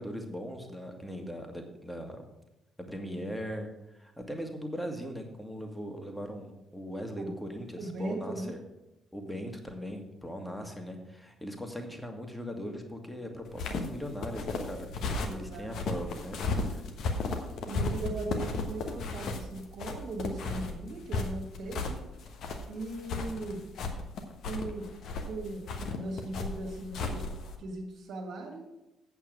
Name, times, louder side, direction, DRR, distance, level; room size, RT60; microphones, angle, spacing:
voice 1, 0.0-2.3 2.9-8.6 9.1-14.9 15.3-16.8, equal, 5° left, 4 dB, 1.8 m, -39 dB
voice 2, 7.8-8.5 15.2-15.7 17.6-22.0 22.7-23.6 24.4-27.2 27.6-28.7, right 2 dB, 55° right, 1 dB, 2.1 m, -38 dB
sound 1, 13.5-27.6, left 3 dB, 55° left, 1.1 m, -35 dB
8.3 x 7.3 x 6.3 m, 0.93 s
figure-of-eight pair, 45°, 0 cm